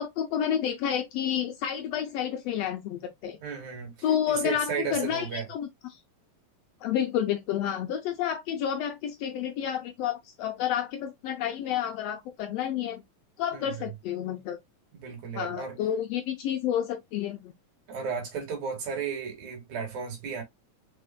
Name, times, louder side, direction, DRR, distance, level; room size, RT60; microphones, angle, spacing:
voice 1, 0.0-3.4 4.0-6.0 6.8-13.0 13.4-14.6 15.3-17.5, left 9 dB, 75° left, 1.5 m, -30 dB
voice 2, 3.4-5.5 13.5-13.9 14.9-15.8 17.9-20.4, right 6 dB, 75° right, 3.3 m, -34 dB
5.3 x 4.2 x 2.2 m
omnidirectional pair, 3.3 m